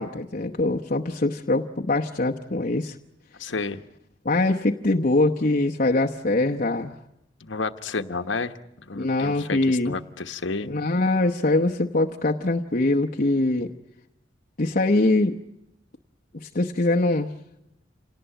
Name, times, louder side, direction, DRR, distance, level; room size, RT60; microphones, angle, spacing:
voice 1, 0.0-3.0 4.2-6.9 8.9-10.0 10.6-13.7 14.6-15.4 16.4-17.3, left 2 dB, 45° left, 1 dB, 0.9 m, -23 dB
voice 2, 3.4-3.8 7.4-8.5 8.8-10.7, left 4 dB, 85° left, 9 dB, 1.2 m, -31 dB
27.5 x 18.5 x 9.0 m, 0.86 s
head